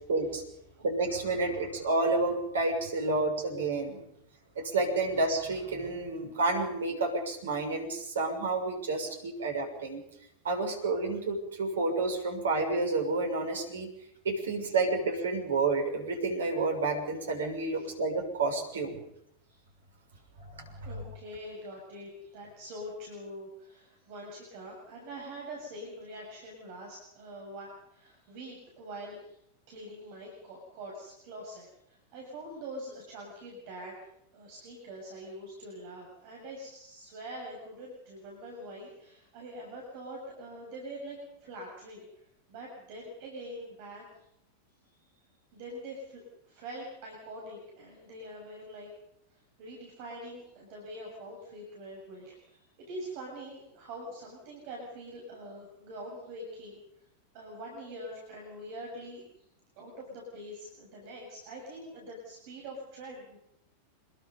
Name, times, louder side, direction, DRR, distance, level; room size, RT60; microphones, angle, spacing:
voice 1, 0.1-0.4 0.8-4.0 4.5-10.0 10.4-13.9 14.2-19.0 20.6-21.0, right 3 dB, 65° right, 5 dB, 6.7 m, -30 dB
voice 2, 20.8-29.2 29.7-34.0 34.3-42.1 42.5-44.0 45.5-48.9 49.6-56.8 57.3-59.2 59.8-63.4, right 1 dB, 45° right, -1 dB, 7.4 m, -44 dB
27.0 x 22.5 x 5.6 m, 0.76 s
figure-of-eight pair, 90°, 0 cm